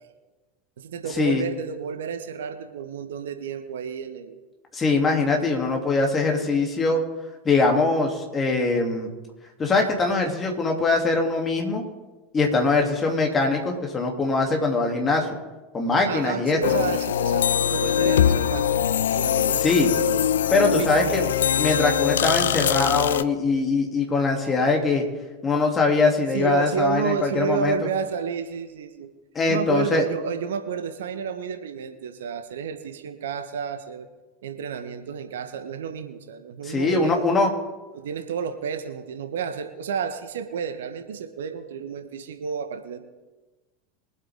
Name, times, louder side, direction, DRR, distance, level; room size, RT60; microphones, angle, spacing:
voice 1, 0.8-4.4 16.1-20.0 20.7-21.2 26.3-29.1 29.4-34.1 34.4-37.1 37.9-43.0, right 7 dB, 65° right, 7 dB, 1.2 m, -31 dB
voice 2, 4.7-7.0 7.4-9.1 9.6-11.8 12.3-15.3 15.7-16.6 19.6-19.9 20.5-21.3 21.6-25.0 25.4-27.8 29.3-30.0 36.6-37.5, left 3 dB, 25° left, 1 dB, 2.9 m, -22 dB
sound 1, 16.6-23.2, left 9 dB, 70° left, 0.4 m, -22 dB
23.5 x 8.2 x 3.7 m, 1.2 s
figure-of-eight pair, 80°, 0 cm